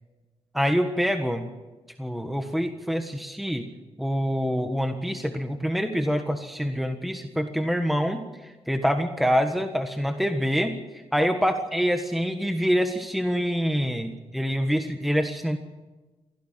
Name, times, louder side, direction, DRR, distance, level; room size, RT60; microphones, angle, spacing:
voice 1, 0.5-1.5 2.0-3.7 4.0-10.7 11.1-15.6, equal, ahead, 6 dB, 1.5 m, -26 dB
22.5 x 16.5 x 7.6 m, 1.2 s
cardioid pair, 100°, 10 cm